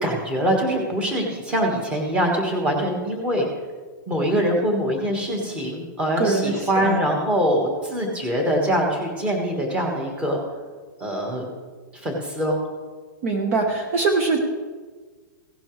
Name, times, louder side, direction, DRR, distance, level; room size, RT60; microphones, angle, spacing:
voice 1, 0.0-3.5 4.1-10.4 11.0-11.5 11.9-12.6, equal, 10° right, 1 dB, 1.5 m, -23 dB
voice 2, 6.2-7.0 13.2-14.4, right 3 dB, 40° right, 4 dB, 1.0 m, -22 dB
16.5 x 11.0 x 3.2 m, 1.4 s
supercardioid pair, 175°, 11 cm